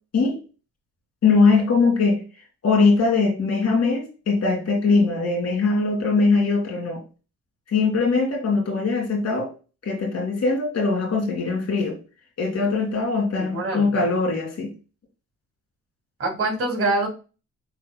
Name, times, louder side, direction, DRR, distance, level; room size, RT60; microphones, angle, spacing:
voice 1, 1.2-2.2 2.6-7.0 7.7-9.5 9.8-12.0 12.4-14.7, left 4 dB, 60° left, 1 dB, 2.3 m, -21 dB
voice 2, 13.4-14.0 16.2-17.1, right 2 dB, 45° right, 1 dB, 2.6 m, -25 dB
6.8 x 3.5 x 2.2 m, 0.33 s
cardioid pair, 90°, 30 cm